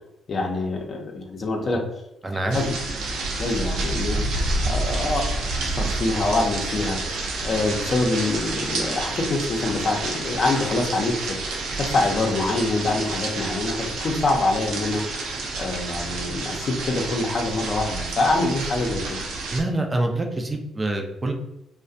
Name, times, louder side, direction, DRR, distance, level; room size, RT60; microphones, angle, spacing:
voice 1, 0.3-1.8 2.3-2.7 3.4-5.4 5.6-7.2 7.4-15.0 15.6-19.0, left 2 dB, 45° left, 1 dB, 0.6 m, -25 dB
voice 2, 2.2-2.6 19.5-21.3, right 2 dB, 25° right, 3 dB, 0.5 m, -26 dB
sound 1, 2.5-19.6, right 2 dB, 80° right, 0.5 m, -29 dB
2.3 x 2.1 x 2.6 m, 0.86 s
cardioid pair, 80°, 0 cm